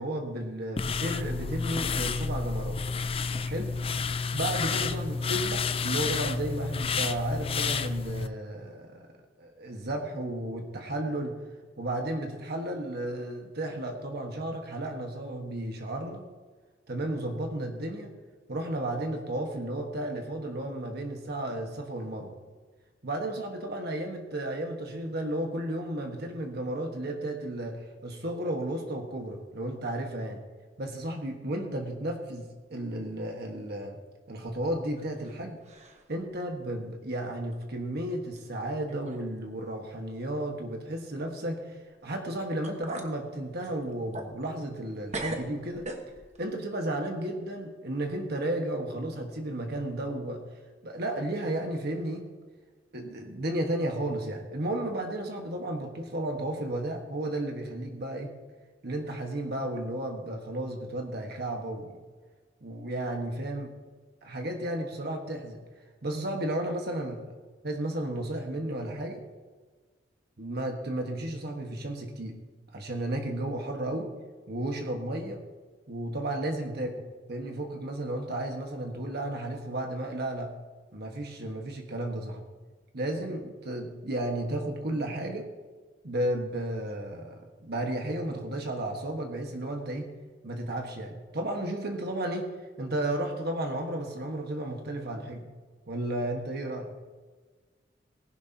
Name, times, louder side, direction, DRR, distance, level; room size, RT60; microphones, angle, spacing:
voice 1, 0.0-2.8 3.5-3.7 4.3-9.1 9.4-11.4 11.8-16.2 16.9-18.1 18.5-22.3 23.0-30.4 30.8-34.0 34.3-35.6 36.1-45.9 46.4-50.4 50.8-52.3 52.9-58.3 58.8-62.0 62.6-63.7 64.2-65.6 66.0-67.2 67.6-69.2 70.4-72.4 72.7-74.1 74.5-75.4 75.9-80.5 80.9-82.5 82.9-85.5 86.0-90.1 90.4-92.5 92.8-95.5 95.9-96.9, right 1 dB, 55° right, 3 dB, 1.4 m, -33 dB
sound 1, 0.8-8.3, left 5 dB, 30° left, 0.5 m, -30 dB
sound 2, 34.5-35.4 35.6-36.1 36.6-36.7 37.5-37.6 38.4-38.5 38.9-39.3 39.5-39.7 42.2-42.3 42.6-43.1 43.6-44.9 45.1-46.4, right 2 dB, 35° right, 1.3 m, -40 dB
19.0 x 11.0 x 2.9 m, 1.4 s
head